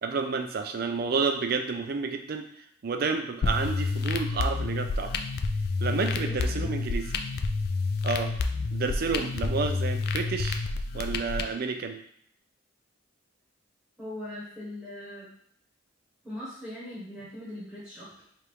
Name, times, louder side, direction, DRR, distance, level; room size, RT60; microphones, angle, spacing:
voice 1, 0.0-2.5 2.8-5.1 5.8-7.0 8.0-8.3 8.7-10.6 10.9-12.0, right 4 dB, 45° right, 6 dB, 0.4 m, -30 dB
sound 1, 3.4-11.4, left 3 dB, 50° left, 0.3 m, -29 dB
voice 2, 6.1-6.7 14.0-15.3 16.2-18.3, left 1 dB, 5° right, -9 dB, 1.1 m, -40 dB
3.5 x 2.5 x 4.5 m, 0.66 s
head